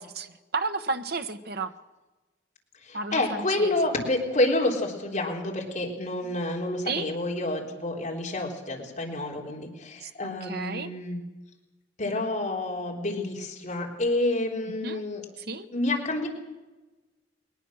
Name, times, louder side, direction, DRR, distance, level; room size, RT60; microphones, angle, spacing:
voice 1, 0.2-1.7 2.9-3.8 6.2-6.4 6.8-7.1 10.0-10.9 14.8-15.0 15.4-15.7, right 4 dB, 60° right, 8 dB, 1.2 m, -33 dB
voice 2, 2.8-11.2 12.0-15.2 15.7-16.3, left 2 dB, 45° left, -1 dB, 3.7 m, -28 dB
22.0 x 20.0 x 6.5 m, 1.1 s
head